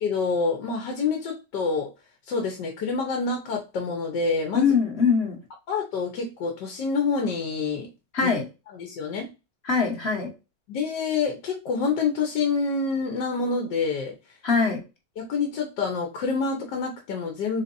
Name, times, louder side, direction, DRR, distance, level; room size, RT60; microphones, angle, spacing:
voice 1, 0.0-1.9 2.3-4.7 5.7-7.9 8.2-8.3 8.7-9.3 10.7-14.1 15.2-17.6, left 4 dB, 80° left, 2 dB, 1.5 m, -27 dB
voice 2, 4.5-5.4 8.1-8.5 9.6-10.3 14.4-14.8, left 5 dB, 40° left, 2 dB, 1.3 m, -22 dB
4.1 x 3.9 x 2.6 m, 0.27 s
omnidirectional pair, 1.8 m